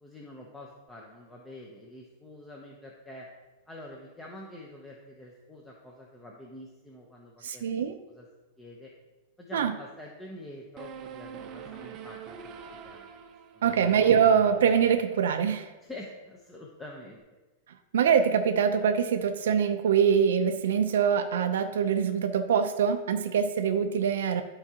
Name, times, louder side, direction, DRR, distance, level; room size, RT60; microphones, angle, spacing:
voice 1, 0.0-3.3 3.7-7.7 8.0-8.3 8.6-8.9 9.4-13.1 13.5-13.9 15.8-17.2, left 1 dB, 10° left, -2 dB, 0.8 m, -46 dB
voice 2, 7.4-7.9 9.5-9.7 13.6-15.7 17.9-24.4, right 7 dB, 90° right, 7 dB, 0.6 m, -24 dB
sound 1, 10.8-15.4, right 7 dB, 30° right, 0.7 m, -44 dB
12.0 x 4.8 x 2.9 m, 1.2 s
supercardioid pair, 155°, 0 cm